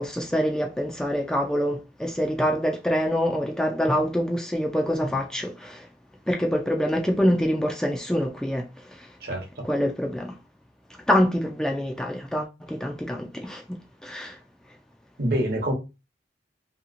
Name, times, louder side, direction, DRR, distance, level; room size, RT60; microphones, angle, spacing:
voice 1, 0.0-5.9 6.3-9.1 9.6-10.3 11.1-13.8 14.0-14.4, equal, 5° left, 0.3 m, -25 dB
voice 2, 9.2-9.6 15.2-15.7, right 1 dB, 55° right, 0.9 m, -26 dB
2.9 x 2.8 x 2.5 m
head